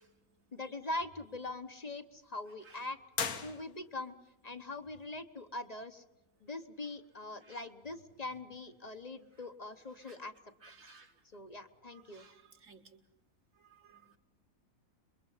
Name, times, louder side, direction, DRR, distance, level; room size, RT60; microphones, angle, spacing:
voice 1, 0.5-3.0 3.4-4.1 4.4-6.0 6.4-10.3 11.3-12.2, left 2 dB, 30° left, 10 dB, 1.0 m, -42 dB
sound 1, 3.1-4.2, left 6 dB, 80° left, 1.9 m, -38 dB
voice 2, 10.6-11.1 12.1-12.8 13.7-14.2, right 4 dB, 60° right, 4 dB, 2.2 m, -58 dB
27.5 x 23.0 x 5.6 m, 0.92 s
omnidirectional pair, 1.5 m